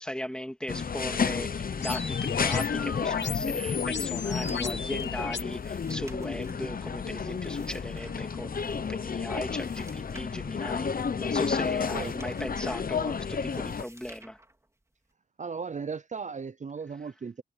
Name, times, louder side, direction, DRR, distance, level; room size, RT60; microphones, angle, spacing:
voice 1, 0.0-14.4, equal, 5° left, 2.2 m, -38 dB
sound 1, 0.7-13.8, left 6 dB, 55° left, 0.7 m, -31 dB
sound 2, 1.8-5.4, left 6 dB, 90° left, 1.3 m, -33 dB
sound 3, 3.6-15.1, right 1 dB, 15° right, 3.1 m, -55 dB
voice 2, 11.9-12.3 15.4-17.4, right 5 dB, 45° right, 0.5 m, -37 dB
wide cardioid pair, 110°, 18 cm